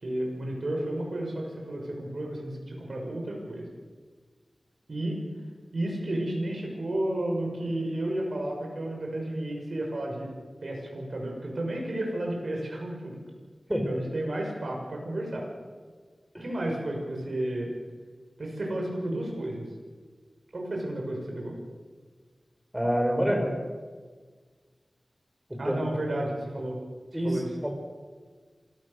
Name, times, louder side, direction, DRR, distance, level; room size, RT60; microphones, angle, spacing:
voice 1, 0.0-3.7 4.9-5.2 5.7-10.3 10.6-13.1 13.8-15.5 16.4-17.7 18.4-19.7 20.5-21.5 25.6-26.8 27.1-27.5, right 1 dB, 70° right, 0 dB, 6.0 m, -32 dB
voice 2, 22.7-23.5 25.6-25.8 27.1-27.7, equal, 10° right, 3 dB, 5.3 m, -26 dB
27.0 x 17.0 x 6.7 m, 1.5 s
wide cardioid pair, 55°, 0 cm